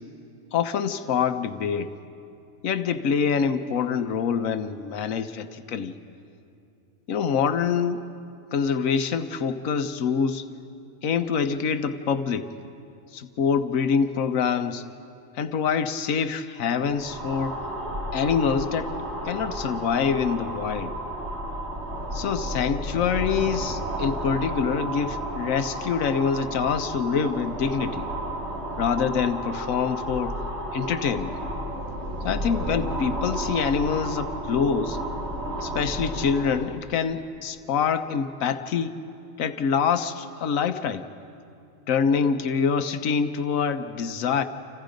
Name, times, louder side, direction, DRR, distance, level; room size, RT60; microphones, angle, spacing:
voice 1, 0.5-1.9 2.6-5.9 7.1-8.0 8.5-10.4 11.0-12.5 13.1-14.8 15.3-17.6 18.1-18.9 19.2-20.9 22.1-28.1 28.8-30.4 30.7-31.4 32.2-35.0 35.6-39.0 39.4-41.1 41.9-44.4, left 6 dB, 90° left, 10 dB, 1.3 m, -25 dB
sound 1, 16.8-36.7, right 1 dB, 55° right, 2.8 m, -32 dB
29.5 x 27.5 x 5.2 m, 2.6 s
omnidirectional pair, 1.4 m